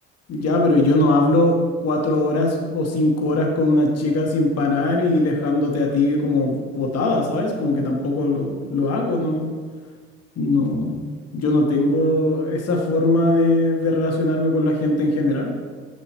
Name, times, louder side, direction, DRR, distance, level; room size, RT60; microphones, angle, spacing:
voice 1, 0.3-9.5 10.4-11.1 11.3-15.6, left 2 dB, 50° left, 0 dB, 1.1 m, -20 dB
7.4 x 5.4 x 2.9 m, 1.5 s
supercardioid pair, 60°, 32 cm